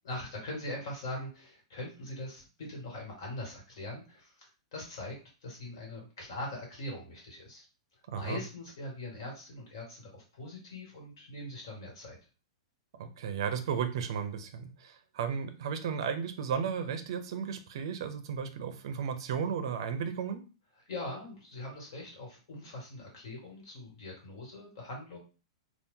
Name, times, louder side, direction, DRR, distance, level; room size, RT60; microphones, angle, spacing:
voice 1, 0.0-5.1 5.4-7.6 8.1-12.2 20.9-25.2, left 1 dB, 55° left, -1 dB, 1.7 m, -42 dB
voice 2, 8.1-8.4 12.9-20.4, right 7 dB, 55° right, 8 dB, 0.5 m, -34 dB
2.8 x 2.3 x 3.6 m, 0.35 s
supercardioid pair, 170°, 3 cm